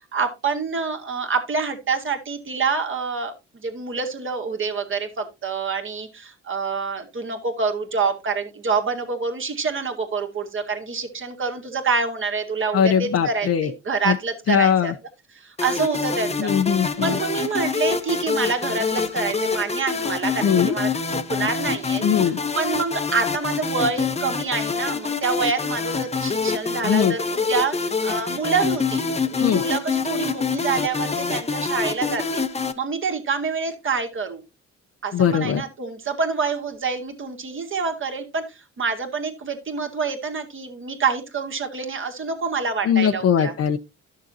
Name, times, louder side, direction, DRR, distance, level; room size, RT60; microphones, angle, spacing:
voice 1, 0.1-14.9 15.4-16.5 17.0-34.4 35.0-43.5, right 5 dB, 40° right, 2.0 m, -27 dB
voice 2, 12.7-13.7 14.0-14.2 14.5-14.9 16.4-17.2 20.4-20.7 22.0-22.4 26.8-27.2 29.4-29.6 35.1-35.6 42.8-43.8, left 8 dB, 55° left, 0.8 m, -20 dB
sound 1, 15.6-32.7, left 4 dB, 20° left, 0.9 m, -26 dB
12.0 x 6.6 x 2.8 m
cardioid pair, 90°, 30 cm